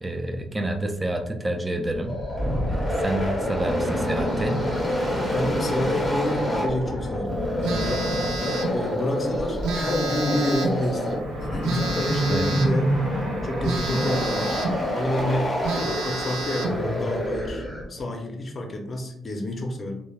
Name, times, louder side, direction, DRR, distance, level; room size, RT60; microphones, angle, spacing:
voice 1, 0.0-2.2 2.7-4.6 12.3-12.5, right 1 dB, 20° right, 5 dB, 0.4 m, -28 dB
sound 1, 1.9-18.0, equal, ahead, 0.9 m, -27 dB
voice 2, 5.3-8.1 8.7-12.9 13.4-15.5 16.0-17.6 17.9-20.0, left 1 dB, 35° left, 3 dB, 0.5 m, -28 dB
Telephone, 7.6-8.8 9.6-10.8 11.6-12.8 13.6-14.8 15.3-15.4 15.6-16.8, right 3 dB, 80° right, 0.4 m, -30 dB
sound 2, 10.8-15.9, right 1 dB, 50° right, 0.7 m, -41 dB
3.2 x 2.0 x 2.3 m, 0.79 s
cardioid pair, 90°, 0 cm